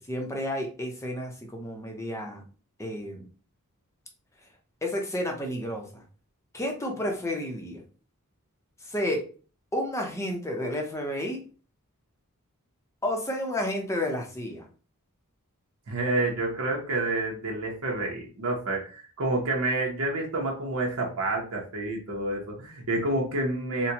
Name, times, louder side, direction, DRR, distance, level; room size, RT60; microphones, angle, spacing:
voice 1, 0.1-2.4 2.8-3.3 4.8-6.0 6.5-7.8 8.8-9.3 9.7-11.5 13.0-14.7, left 1 dB, 15° left, 2 dB, 0.7 m, -31 dB
voice 2, 15.9-23.9, right 2 dB, 65° right, -1 dB, 0.9 m, -29 dB
4.1 x 2.2 x 2.8 m, 0.37 s
head